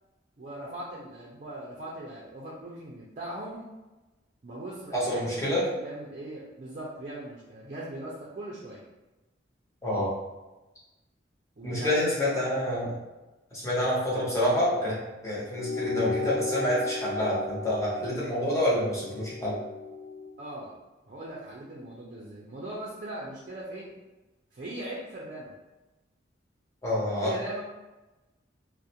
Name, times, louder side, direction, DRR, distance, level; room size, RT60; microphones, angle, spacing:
voice 1, 0.4-3.7 4.4-8.8 11.6-12.5 20.4-20.7 21.0-23.9 24.5-25.5 27.2-27.6, right 1 dB, 40° right, -5 dB, 0.4 m, -39 dB
voice 2, 4.9-5.6 9.8-10.2 11.6-12.9 13.5-19.6 26.8-27.3, left 1 dB, 15° left, -7 dB, 0.8 m, -27 dB
sound 1, 15.5-20.3, left 3 dB, 70° left, 0.3 m, -34 dB
2.4 x 2.1 x 2.8 m, 1.1 s
head